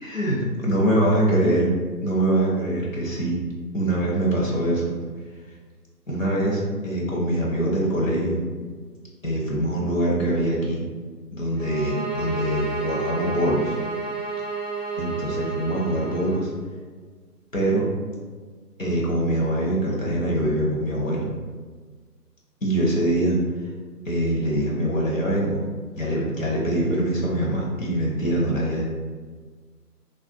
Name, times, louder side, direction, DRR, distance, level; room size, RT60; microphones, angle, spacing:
voice 1, 0.0-0.4 0.6-1.7 2.0-3.4 3.7-4.9 6.1-8.4 9.2-10.8 11.3-13.8 15.0-16.5 17.5-17.9 18.8-21.2 22.6-23.4 24.0-25.6 25.9-28.8, right 1 dB, 55° left, -4 dB, 0.8 m, -23 dB
sound 1, 11.6-16.5, right 3 dB, 30° right, 0.5 m, -31 dB
2.5 x 2.2 x 3.4 m, 1.5 s
figure-of-eight pair, 145°, 49 cm